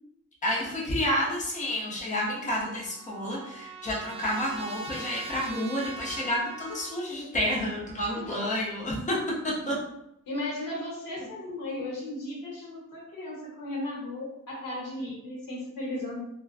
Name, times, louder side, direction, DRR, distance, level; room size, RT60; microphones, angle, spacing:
voice 1, 0.4-9.8, equal, 25° left, -4 dB, 0.7 m, -30 dB
Trumpet, 2.3-7.0, right 3 dB, 20° right, 0.3 m, -42 dB
voice 2, 10.3-16.2, left 1 dB, 90° left, -3 dB, 0.9 m, -36 dB
2.4 x 2.2 x 2.4 m, 0.81 s
wide cardioid pair, 110°, 32 cm